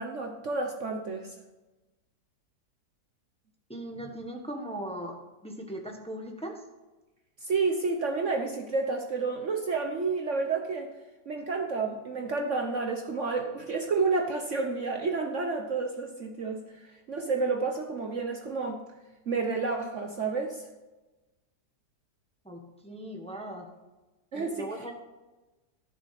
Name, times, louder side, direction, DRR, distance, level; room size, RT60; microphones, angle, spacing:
voice 1, 0.0-1.3 7.4-10.9 11.3-18.8 19.3-20.7 24.3-24.7, right 4 dB, 50° right, 3 dB, 1.2 m, -30 dB
voice 2, 3.7-6.6 22.4-23.7 24.3-24.9, right 1 dB, 5° left, 1 dB, 1.3 m, -39 dB
13.5 x 6.6 x 5.9 m, 1.1 s
omnidirectional pair, 1.8 m